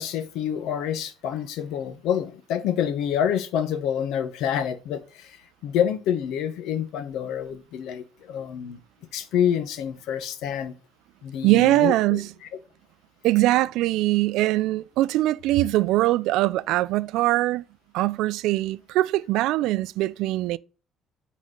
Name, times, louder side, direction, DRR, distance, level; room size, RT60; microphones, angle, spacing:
voice 1, 0.0-5.3 5.6-8.8 9.1-10.7 11.2-12.2, left 9 dB, 80° left, 0.9 m, -27 dB
voice 2, 11.4-12.3 13.2-17.6 17.9-20.6, right 17 dB, 90° right, 0.3 m, -22 dB
9.2 x 4.1 x 3.8 m
cardioid pair, 125°, 0 cm